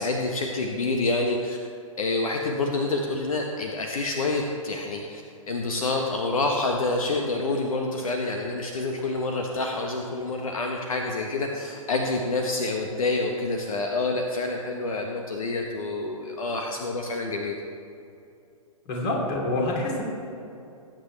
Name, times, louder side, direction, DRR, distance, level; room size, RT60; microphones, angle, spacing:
voice 1, 0.0-1.6 2.0-5.2 5.5-17.5, left 2 dB, 70° left, 2 dB, 1.2 m, -27 dB
voice 2, 18.9-20.0, left 2 dB, 35° left, -2 dB, 3.3 m, -26 dB
19.0 x 8.9 x 3.4 m, 2.7 s
hypercardioid pair, 125°, 18 cm